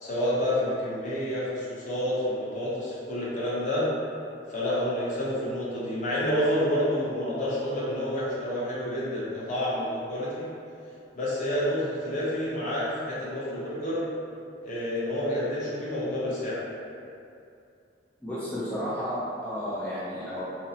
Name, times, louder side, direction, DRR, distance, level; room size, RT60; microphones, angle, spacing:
voice 1, 0.0-3.9 4.5-10.5 11.1-14.0 14.6-16.6, left 1 dB, 45° left, -8 dB, 0.7 m, -29 dB
voice 2, 18.2-20.4, equal, 10° left, -11 dB, 0.3 m, -32 dB
2.8 x 2.0 x 2.7 m, 2.5 s
head